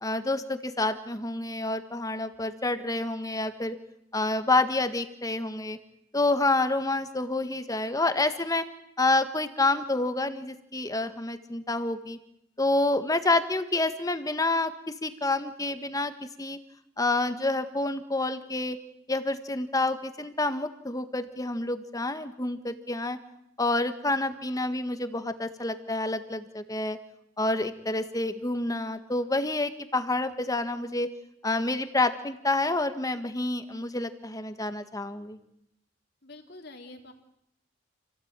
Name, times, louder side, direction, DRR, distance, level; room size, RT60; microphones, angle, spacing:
voice 1, 0.0-3.7 4.1-5.8 6.1-8.6 9.0-12.2 12.6-14.7 15.0-16.1 16.4-16.6 17.0-18.8 19.1-23.2 23.6-27.0 27.4-31.1 31.4-35.4, left 2 dB, 20° left, 9 dB, 1.6 m, -28 dB
voice 2, 36.2-37.1, left 2 dB, 55° left, 4 dB, 3.4 m, -46 dB
28.5 x 17.5 x 9.0 m, 0.80 s
head